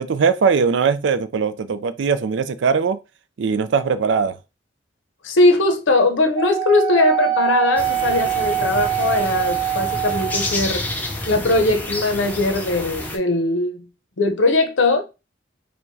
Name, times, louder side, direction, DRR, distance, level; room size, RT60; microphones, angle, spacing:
voice 1, 0.0-3.0 3.4-4.4, right 5 dB, 70° right, 0.4 m, -20 dB
voice 2, 5.2-10.8 11.3-13.8 14.2-15.0, left 2 dB, 85° left, 0.7 m, -19 dB
Wind instrument woodwind instrument, 6.4-10.5, right 11 dB, 35° right, 1.0 m, -23 dB
sound 1, 7.8-13.2, left 1 dB, 10° left, 0.5 m, -29 dB
4.5 x 2.2 x 2.6 m
head